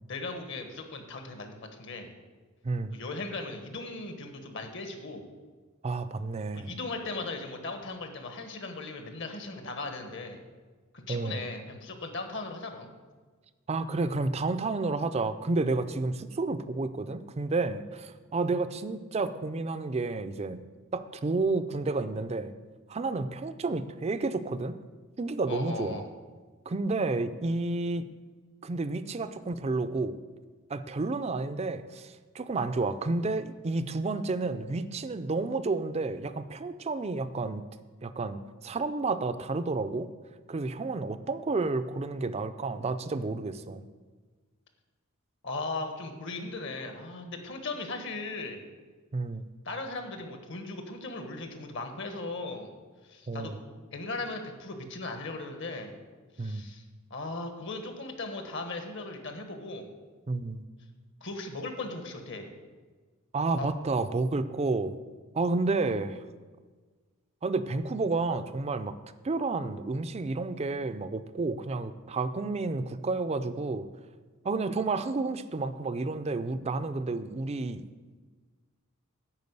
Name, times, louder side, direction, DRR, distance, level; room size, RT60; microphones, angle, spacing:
voice 1, 0.1-2.1 2.9-5.3 6.5-10.4 10.9-12.9 25.4-26.1 45.4-48.6 49.6-52.7 53.0-53.5 53.9-56.0 56.4-56.8 57.1-59.9 61.2-62.5 63.6-63.7, left 3 dB, 60° left, 5 dB, 1.3 m, -38 dB
voice 2, 2.6-3.0 5.8-6.7 11.1-11.4 13.7-20.6 20.9-22.5 22.9-24.8 25.2-26.0 26.7-28.1 28.6-30.1 30.7-37.6 38.0-40.1 40.5-43.8 49.1-49.5 53.3-53.6 56.4-56.6 60.3-60.6 63.3-64.9 65.3-66.2 67.4-69.0 69.2-73.9 74.4-77.8, right 3 dB, 30° right, 12 dB, 0.4 m, -30 dB
10.5 x 4.7 x 8.1 m, 1.4 s
head